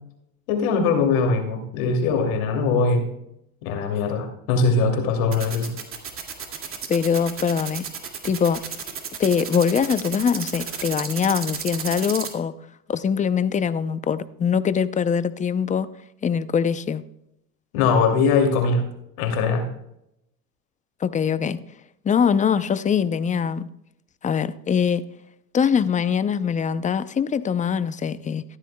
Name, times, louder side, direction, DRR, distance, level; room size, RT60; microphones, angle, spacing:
voice 1, 0.5-3.1 3.6-5.7 17.7-18.8 19.2-19.7, left 4 dB, 80° left, 2.7 m, -21 dB
sound 1, 5.3-12.3, right 7 dB, 30° right, 2.2 m, -32 dB
voice 2, 6.9-7.9 8.2-8.6 9.2-12.5 12.9-15.9 16.2-17.0 21.0-21.6 22.0-23.7 24.2-25.1 25.5-28.4, left 7 dB, 20° left, 0.5 m, -23 dB
14.5 x 12.5 x 2.2 m
supercardioid pair, 105°, 41 cm